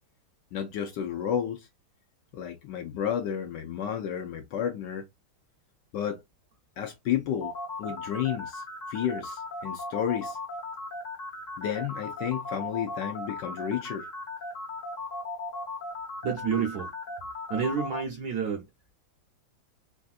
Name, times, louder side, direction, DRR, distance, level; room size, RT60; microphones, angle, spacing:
voice 1, 0.5-1.7 2.3-5.1 5.9-6.2 6.8-7.5 7.8-8.6 8.9-10.4 11.6-14.1, left 9 dB, 75° left, 1.1 m, -31 dB
sound 1, 7.4-18.0, left 2 dB, 45° left, 1.2 m, -37 dB
voice 2, 16.2-16.9 17.5-18.6, right 6 dB, 70° right, 0.9 m, -29 dB
3.4 x 2.4 x 2.3 m
omnidirectional pair, 2.3 m